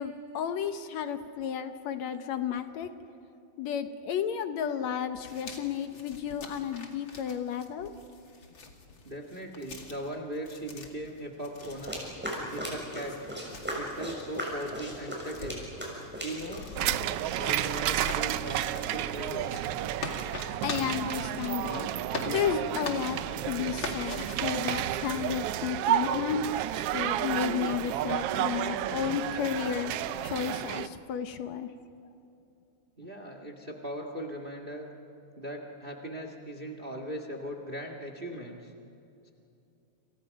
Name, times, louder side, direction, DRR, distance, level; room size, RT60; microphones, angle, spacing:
voice 1, 0.0-2.9 3.6-7.9 20.6-21.9 22.3-23.2 23.5-26.4 26.9-29.9 30.2-31.7, left 8 dB, 70° left, 8 dB, 2.1 m, -32 dB
sound 1, 5.1-21.8 22.1-23.4 23.8-24.3, left 4 dB, 45° left, 2.7 m, -43 dB
voice 2, 9.0-12.0 12.5-13.2 13.7-15.6 16.2-16.7 17.4-19.7 33.0-34.9 35.3-38.7, equal, 25° right, 4 dB, 1.5 m, -39 dB
sound 2, 11.6-16.8, equal, 5° right, 6.3 m, -38 dB
sound 3, 16.8-30.9, right 12 dB, 80° right, 1.3 m, -31 dB
30.0 x 28.0 x 5.3 m, 2.7 s
omnidirectional pair, 3.4 m